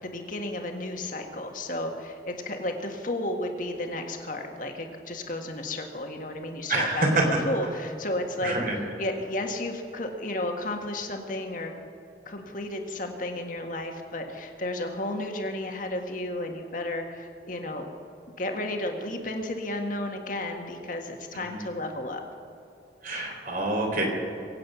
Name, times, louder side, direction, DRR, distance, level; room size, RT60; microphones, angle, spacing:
voice 1, 0.0-7.1 7.5-8.5 9.0-11.7 12.3-17.9 18.4-22.2, left 1 dB, 50° left, 3 dB, 1.8 m, -33 dB
voice 2, 6.7-7.2 8.4-8.8 21.3-21.6 23.0-24.0, right 2 dB, 50° right, 1 dB, 3.5 m, -26 dB
23.5 x 8.9 x 6.2 m, 2.8 s
head